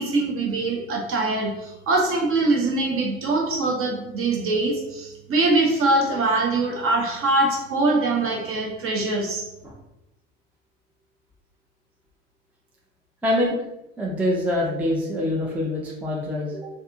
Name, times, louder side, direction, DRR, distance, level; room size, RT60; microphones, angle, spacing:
voice 1, 0.0-9.4, right 2 dB, 35° right, 0 dB, 0.8 m, -23 dB
voice 2, 13.2-13.5 14.0-16.7, left 1 dB, 5° right, -3 dB, 0.4 m, -25 dB
2.6 x 2.5 x 2.4 m, 0.92 s
hypercardioid pair, 65°, 37 cm